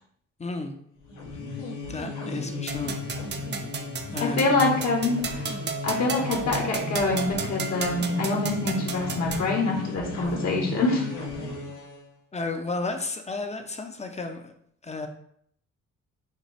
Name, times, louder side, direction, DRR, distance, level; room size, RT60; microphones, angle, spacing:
voice 1, 0.4-0.8 1.9-3.0 4.1-4.6 12.3-14.5 14.8-15.1, left 3 dB, 20° left, 5 dB, 0.6 m, -32 dB
sound 1, 1.0-12.0, left 3 dB, 85° left, 1.6 m, -35 dB
sound 2, 2.7-9.5, right 5 dB, 35° right, 0.6 m, -34 dB
voice 2, 4.2-5.4 5.8-11.1, left 3 dB, 60° left, -1 dB, 1.3 m, -25 dB
6.4 x 2.3 x 3.4 m, 0.68 s
cardioid pair, 90°, 30 cm